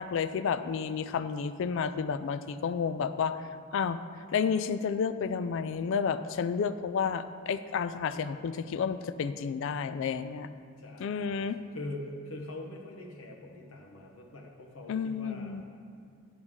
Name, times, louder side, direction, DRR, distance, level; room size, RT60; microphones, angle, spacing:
voice 1, 0.0-3.5 3.7-4.0 4.3-10.5 11.0-11.6 14.9-15.6, left 6 dB, 65° left, 11 dB, 0.3 m, -31 dB
voice 2, 10.8-15.6, left 2 dB, 85° left, 1 dB, 1.1 m, -43 dB
9.4 x 6.1 x 3.7 m, 2.2 s
head